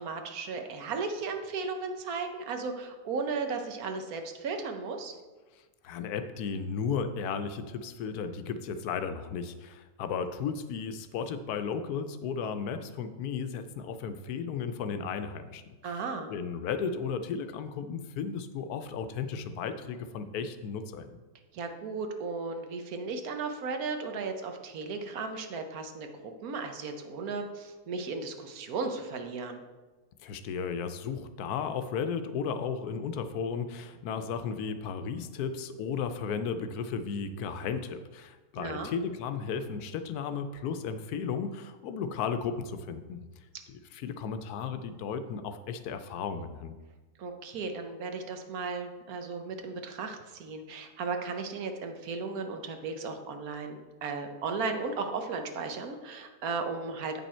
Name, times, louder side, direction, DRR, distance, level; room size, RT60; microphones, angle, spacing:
voice 1, 0.0-5.1 15.8-16.3 21.5-29.6 38.6-38.9 47.2-57.2, right 4 dB, 70° right, 6 dB, 1.2 m, -35 dB
voice 2, 5.8-16.0 16.3-21.2 30.2-43.2 43.7-46.8, left 6 dB, 80° left, 9 dB, 1.1 m, -34 dB
8.3 x 5.4 x 4.3 m, 1.3 s
omnidirectional pair, 1.6 m